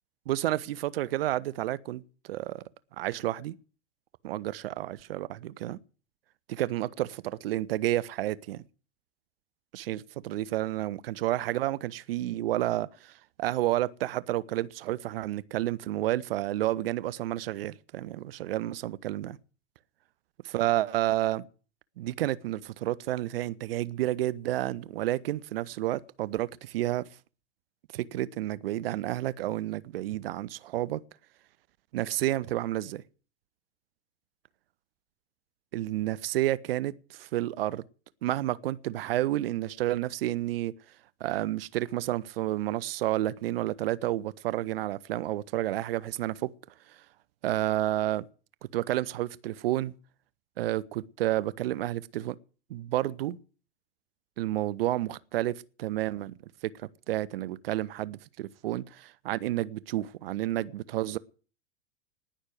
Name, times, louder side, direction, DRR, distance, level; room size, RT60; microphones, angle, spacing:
voice 1, 0.3-2.6 3.0-3.5 4.2-5.8 6.5-8.6 9.7-13.1 13.4-19.4 20.4-21.5 22.0-27.0 27.9-31.0 31.9-33.0 35.7-37.8 38.2-40.7 41.2-46.5 47.4-48.3 48.7-49.9 50.6-52.4 52.7-53.4 54.4-56.3 56.8-61.2, right 15 dB, 55° right, 0.8 m, -30 dB
19.0 x 6.5 x 9.3 m
figure-of-eight pair, 95°, 35 cm